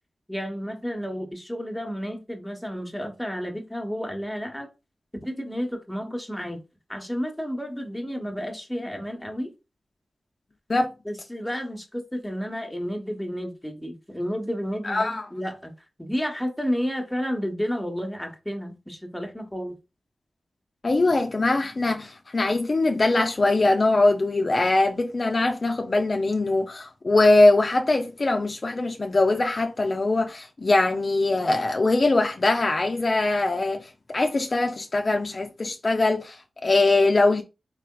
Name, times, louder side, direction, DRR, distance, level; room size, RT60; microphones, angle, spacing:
voice 1, 0.3-4.7 5.1-6.6 6.9-9.5 11.0-15.7 16.0-19.8, equal, 5° left, 1.0 m, -31 dB
voice 2, 14.8-15.3 20.8-37.4, left 2 dB, 45° left, 0.4 m, -22 dB
3.7 x 3.3 x 2.3 m
cardioid pair, 60°, 0 cm